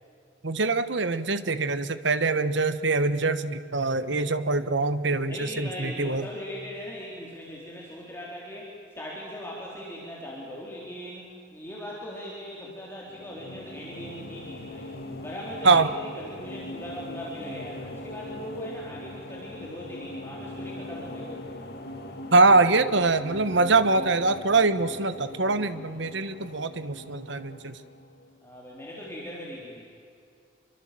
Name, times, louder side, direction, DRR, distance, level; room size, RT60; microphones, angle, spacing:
voice 1, 0.4-6.3 15.6-15.9 22.3-27.8, right 3 dB, 65° right, 12 dB, 1.3 m, -23 dB
voice 2, 5.3-8.7 9.0-14.9 15.2-21.4 28.4-29.9, equal, 10° left, -4 dB, 4.0 m, -39 dB
sound 1, 13.0-28.4, left 1 dB, 55° left, 2.2 m, -41 dB
26.5 x 24.0 x 7.7 m, 2.4 s
head